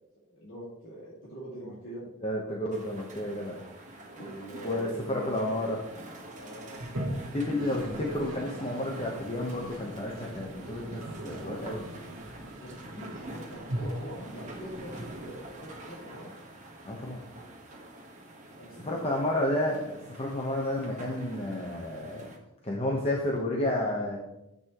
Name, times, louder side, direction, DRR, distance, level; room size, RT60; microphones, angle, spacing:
voice 1, 0.3-2.0 4.0-5.4 6.3-6.8 7.4-8.2 11.3-11.6 12.6-16.3 18.6-19.5, equal, 55° left, -7 dB, 2.2 m, -44 dB
voice 2, 2.2-3.6 4.6-5.8 7.3-11.8 16.8-17.2 18.8-22.3 22.6-24.2, left 1 dB, 30° left, -1 dB, 1.0 m, -31 dB
sound 1, 2.7-22.4, right 1 dB, 35° right, 1.3 m, -47 dB
Toilet flush, 6.7-15.8, right 1 dB, 60° right, 1.4 m, -40 dB
9.7 x 8.1 x 3.0 m, 0.89 s
head